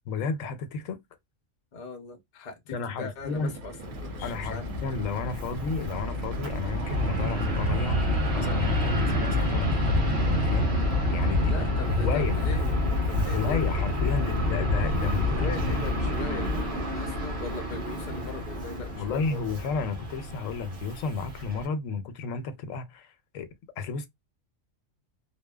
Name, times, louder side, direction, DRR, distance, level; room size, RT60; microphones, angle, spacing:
voice 1, 0.1-1.0 2.7-3.5 4.2-9.9 10.2-11.6 11.9-12.5 13.1-15.8 18.9-23.5 23.8-24.1, left 5 dB, 85° left, 1.0 m, -32 dB
voice 2, 1.7-4.8 11.4-13.6 14.1-14.5 15.3-19.4, left 4 dB, 50° left, 0.5 m, -40 dB
sound 1, 3.2-11.9, right 2 dB, 80° right, 1.0 m, -41 dB
Fixed-wing aircraft airplane, 3.8-21.6, left 1 dB, 60° right, 1.2 m, -28 dB
2.6 x 2.1 x 2.2 m
omnidirectional pair, 1.3 m